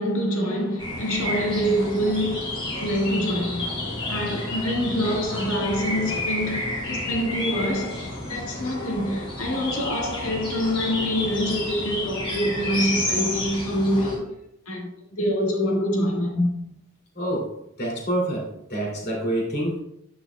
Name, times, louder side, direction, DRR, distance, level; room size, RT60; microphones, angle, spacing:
voice 1, 0.0-14.3 14.7-16.8, equal, 75° left, 1.7 m, -26 dB
sound 1, 0.8-14.2, left 1 dB, 25° left, 2.6 m, -30 dB
voice 2, 17.1-17.5 17.8-19.8, right 1 dB, 45° left, 2.7 m, -27 dB
9.9 x 6.8 x 2.3 m
head